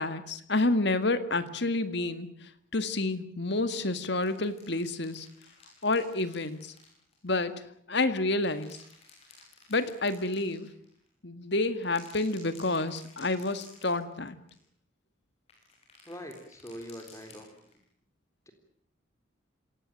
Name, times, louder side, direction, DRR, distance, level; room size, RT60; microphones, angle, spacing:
voice 1, 0.0-2.4 2.7-5.3 5.8-6.7 7.2-8.8 9.7-10.7 11.2-14.4, left 2 dB, 60° left, 11 dB, 2.0 m, -29 dB
sound 1, 4.0-7.5 8.2-11.1 11.7-14.2 14.5-14.6 15.5-17.8, left 3 dB, 30° left, 7.1 m, -56 dB
voice 2, 16.1-17.7 18.5-18.6, equal, 15° left, 5 dB, 3.7 m, -43 dB
26.5 x 17.5 x 9.0 m, 0.67 s
head